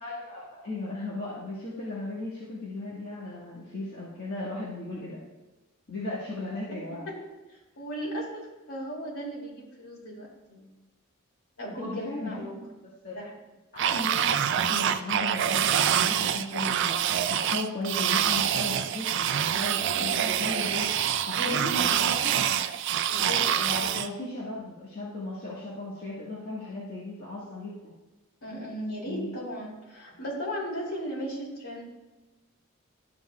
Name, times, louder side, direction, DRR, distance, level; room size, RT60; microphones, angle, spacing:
voice 1, 0.0-5.2 5.9-7.1 11.7-12.3 13.0-13.2 13.7-17.0 17.3-22.5 23.1-27.9 29.0-29.3, left 2 dB, 50° left, -7 dB, 1.6 m, -36 dB
voice 2, 7.8-10.7 11.6-12.6 13.1-13.3 19.8-20.2 21.3-21.7 23.1-23.4 23.8-23.9 28.4-31.8, equal, 85° left, -3 dB, 2.7 m, -36 dB
sound 1, 13.8-24.1, right 9 dB, 55° right, 0.4 m, -26 dB
12.0 x 7.1 x 2.3 m, 1.1 s
head